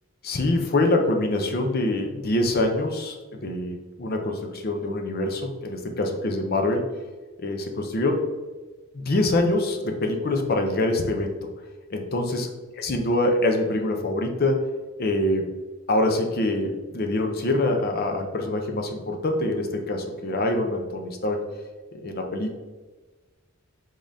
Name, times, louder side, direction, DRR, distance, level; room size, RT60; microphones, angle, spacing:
voice 1, 0.2-6.8 7.4-8.2 8.9-11.4 11.9-12.5 12.8-14.6 15.0-15.5 15.9-21.4 22.0-22.6, left 2 dB, 45° left, 3 dB, 0.5 m, -25 dB
5.2 x 3.7 x 2.6 m, 1.3 s
head